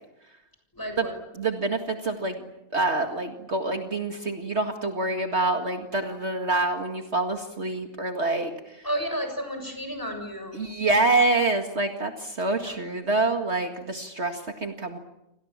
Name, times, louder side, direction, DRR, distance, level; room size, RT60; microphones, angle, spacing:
voice 1, 0.7-1.2 8.8-10.7 12.6-12.8, equal, 15° left, 5 dB, 7.2 m, -32 dB
voice 2, 1.4-8.8 10.5-15.0, right 2 dB, 50° right, 4 dB, 2.2 m, -26 dB
29.5 x 25.5 x 7.4 m, 0.87 s
omnidirectional pair, 1.5 m